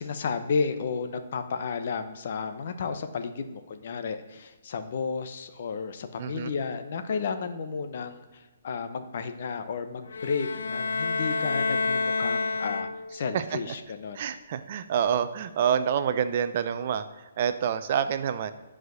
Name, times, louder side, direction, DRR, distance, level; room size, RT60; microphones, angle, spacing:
voice 1, 0.0-14.3, left 5 dB, 50° left, 9 dB, 0.9 m, -32 dB
voice 2, 6.2-6.5 13.3-13.6 14.1-18.5, right 8 dB, 40° right, 11 dB, 0.6 m, -27 dB
sound 1, 10.1-13.3, left 4 dB, 85° left, 0.5 m, -29 dB
10.5 x 5.0 x 6.3 m, 1.2 s
hypercardioid pair, 165°, 0 cm